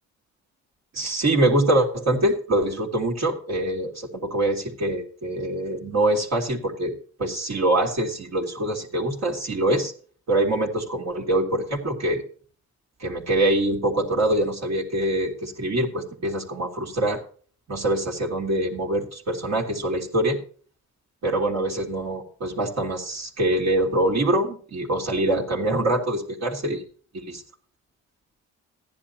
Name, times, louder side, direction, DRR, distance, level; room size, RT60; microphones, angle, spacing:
voice 1, 0.9-9.9 10.3-12.2 13.0-17.2 17.7-20.4 21.2-26.8 27.1-27.4, right 1 dB, 60° right, -2 dB, 2.7 m, -24 dB
15.0 x 10.5 x 2.9 m, 0.44 s
cardioid pair, 90°, 30 cm